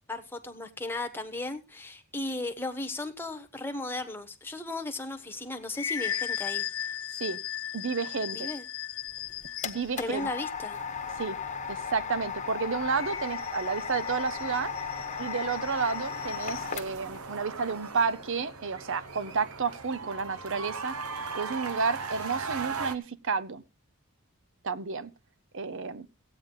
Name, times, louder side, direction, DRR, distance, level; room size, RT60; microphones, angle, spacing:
voice 1, 0.1-6.9 8.3-8.6 10.0-10.8, left 2 dB, 10° left, 1.1 m, -36 dB
sound 1, 5.3-10.0 12.7-16.7, left 10 dB, 60° left, 1.0 m, -37 dB
voice 2, 7.7-8.5 9.6-10.3 11.2-11.4 11.7-14.7 15.2-21.0 21.3-23.6 24.6-25.1 25.5-26.1, right 5 dB, 60° right, 0.7 m, -31 dB
sound 2, 9.1-17.2, left 7 dB, 35° left, 1.0 m, -36 dB
sound 3, 10.7-23.0, right 4 dB, 80° right, 0.9 m, -40 dB
15.0 x 8.9 x 3.9 m
head